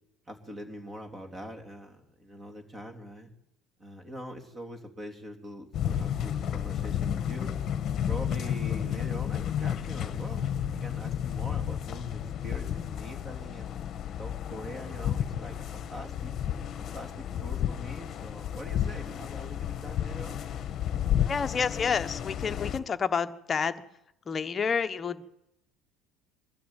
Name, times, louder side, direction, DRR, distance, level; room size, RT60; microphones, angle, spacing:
voice 1, 0.3-3.3 3.8-7.6 8.1-10.5 10.8-13.7 14.2-16.3 16.8-20.4, equal, 20° right, 4 dB, 3.4 m, -43 dB
sound 1, 5.7-22.8, left 9 dB, 40° left, 1.3 m, -32 dB
voice 2, 21.2-23.8 24.3-25.2, left 6 dB, 25° left, 9 dB, 1.1 m, -29 dB
22.5 x 13.0 x 9.2 m, 0.83 s
cardioid pair, 140°, 0 cm